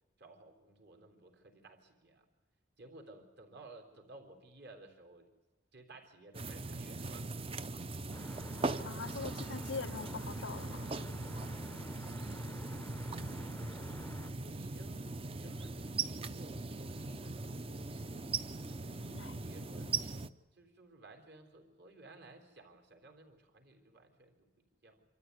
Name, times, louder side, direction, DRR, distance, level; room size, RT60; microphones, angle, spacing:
voice 1, 0.2-2.3 2.8-5.3 5.7-7.3 12.2-17.7 18.7-19.9 20.5-25.0, right 2 dB, 60° right, 3.8 m, -57 dB
sound 1, 6.3-20.3, right 3 dB, 30° right, 0.7 m, -40 dB
sound 2, 8.1-14.3, left 2 dB, 10° left, 0.6 m, -53 dB
voice 2, 8.8-10.9 19.1-19.3 19.9-20.0, left 5 dB, 70° left, 0.6 m, -43 dB
26.5 x 13.5 x 9.6 m
head